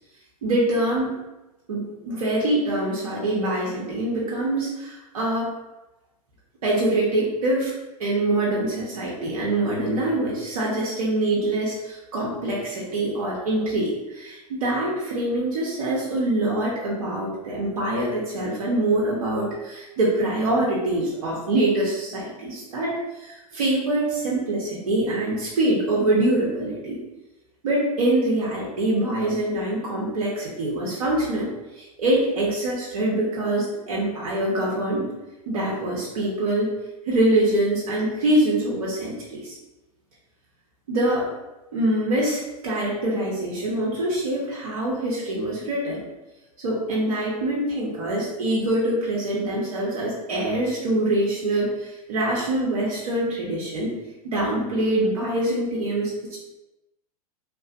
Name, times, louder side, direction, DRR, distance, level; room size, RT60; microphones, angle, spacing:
voice 1, 0.4-1.2 1.7-5.5 6.6-7.7 8.0-27.0 27.6-35.1 35.5-36.7 37.1-39.6 40.9-41.3 41.7-46.0 46.6-53.9 54.2-56.4, right 1 dB, 75° right, -5 dB, 0.7 m, -24 dB
2.8 x 2.4 x 2.4 m, 1.0 s
hypercardioid pair, 100°, 19 cm